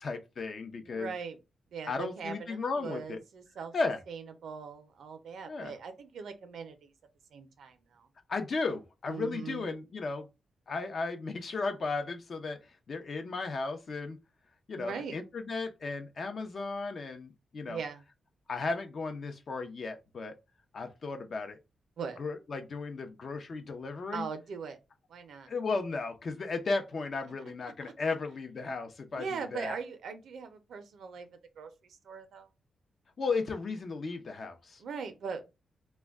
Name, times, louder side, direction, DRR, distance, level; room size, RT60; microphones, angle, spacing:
voice 1, 0.0-1.1 1.9-3.2 3.7-4.0 5.5-5.7 8.3-10.3 10.7-14.2 14.7-17.8 18.5-20.3 20.7-21.6 22.2-24.3 25.5-29.8 33.2-34.8, left 3 dB, 55° left, 0.6 m, -35 dB
voice 2, 0.8-1.4 1.7-3.7 4.1-6.9 7.3-8.1 9.1-9.7 14.8-15.1 17.6-18.0 22.0-22.2 24.1-24.8 25.1-25.5 27.8-27.9 29.1-31.3 31.6-32.5 34.8-35.5, right 5 dB, 80° right, 0.5 m, -40 dB
2.2 x 2.1 x 3.4 m
cardioid pair, 90°, 0 cm